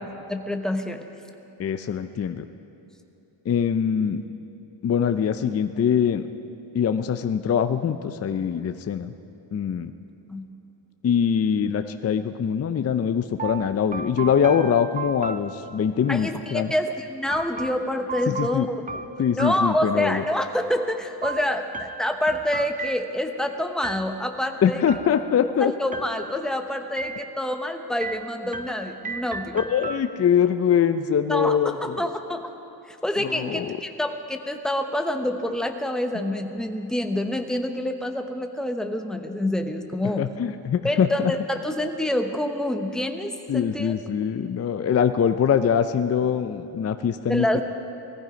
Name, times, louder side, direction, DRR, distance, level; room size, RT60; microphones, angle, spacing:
voice 1, 0.3-1.0 10.3-10.5 16.1-18.8 19.4-24.8 25.6-29.6 31.3-32.5 32.9-40.2 40.8-43.9 47.3-47.6, left 1 dB, ahead, 5 dB, 0.9 m, -27 dB
voice 2, 1.6-2.4 3.5-4.3 4.8-6.2 6.7-9.1 9.5-9.9 11.0-16.7 18.3-18.7 19.2-20.2 24.6-25.7 29.5-32.1 33.2-33.7 40.2-41.3 43.5-47.6, left 8 dB, 35° left, 9 dB, 0.5 m, -23 dB
sound 1, 13.4-16.1 17.3-20.3 21.2-23.4 23.8-24.4 24.9-25.6 25.9-26.6 27.0-27.6 28.0-30.5, right 4 dB, 20° right, 0.4 m, -36 dB
18.5 x 15.0 x 5.1 m, 2.8 s
cardioid pair, 120°, 46 cm